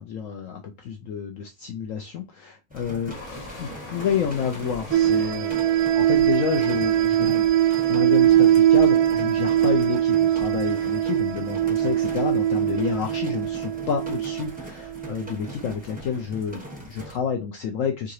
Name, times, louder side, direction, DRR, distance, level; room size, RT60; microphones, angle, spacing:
voice 1, 0.0-3.2 3.6-5.6 5.9-18.1, left 7 dB, 80° left, 3 dB, 0.7 m, -29 dB
sound 1, 2.7-17.2, equal, 10° right, 0.6 m, -41 dB
sound 2, 3.1-15.1, left 1 dB, 45° left, 1.3 m, -46 dB
sound 3, 4.9-15.4, right 11 dB, 75° right, 0.8 m, -21 dB
4.6 x 2.8 x 3.1 m, 0.26 s
omnidirectional pair, 1.9 m